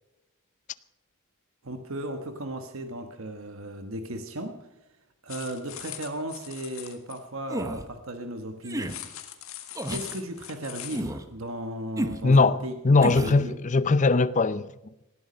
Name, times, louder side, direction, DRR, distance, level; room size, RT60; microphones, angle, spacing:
voice 1, 1.6-4.6 5.2-9.0 9.9-12.7 13.0-13.6, right 1 dB, 65° right, 1.2 m, -36 dB
sound 1, 5.3-7.2 8.7-11.1, left 11 dB, 70° left, 1.6 m, -41 dB
sound 2, 7.5-7.9 8.6-9.0 9.7-10.1 10.9-11.3 12.0-12.2 13.0-13.4, right 1 dB, 15° right, 0.9 m, -31 dB
voice 2, 12.2-12.6 12.8-14.7, left 3 dB, 35° left, 0.5 m, -20 dB
19.0 x 13.0 x 5.3 m
head